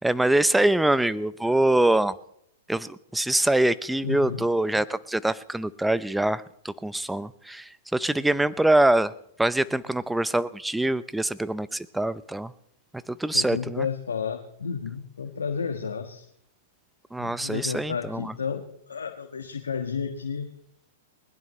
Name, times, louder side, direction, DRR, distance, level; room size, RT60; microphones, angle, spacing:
voice 1, 0.0-2.1 2.7-9.1 9.4-12.5 13.1-13.9 17.1-18.3, right 1 dB, 5° right, 16 dB, 0.7 m, -24 dB
voice 2, 4.0-4.4 13.3-16.2 17.2-20.5, left 6 dB, 90° left, 4 dB, 1.5 m, -32 dB
21.0 x 20.5 x 3.2 m, 0.72 s
hypercardioid pair, 120°, 0 cm